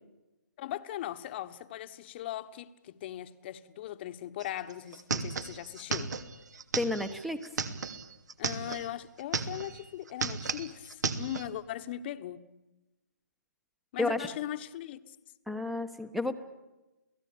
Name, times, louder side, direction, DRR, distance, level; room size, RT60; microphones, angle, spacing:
voice 1, 0.6-6.1 8.4-12.4 13.9-15.2, left 12 dB, 35° left, 1.3 m, -39 dB
sound 1, 4.4-4.5 4.7-8.9 9.2-9.8 10.1-11.5, right 4 dB, 65° right, 2.7 m, -34 dB
voice 2, 6.8-7.4 14.0-14.3 15.5-16.3, left 2 dB, ahead, 1.2 m, -31 dB
29.5 x 18.0 x 8.8 m
hypercardioid pair, 145°, 10 cm